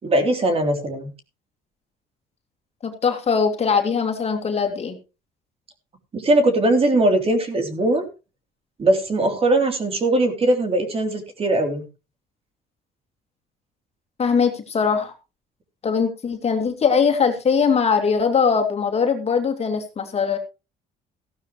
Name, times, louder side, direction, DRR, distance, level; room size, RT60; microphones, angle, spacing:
voice 1, 0.0-1.1 6.1-8.0 8.8-11.9, right 1 dB, 35° right, 5 dB, 3.3 m, -20 dB
voice 2, 2.8-5.0 14.2-15.1 15.8-20.4, left 6 dB, 40° left, 4 dB, 2.6 m, -21 dB
15.0 x 12.0 x 3.1 m, 0.30 s
cardioid pair, 110°, 17 cm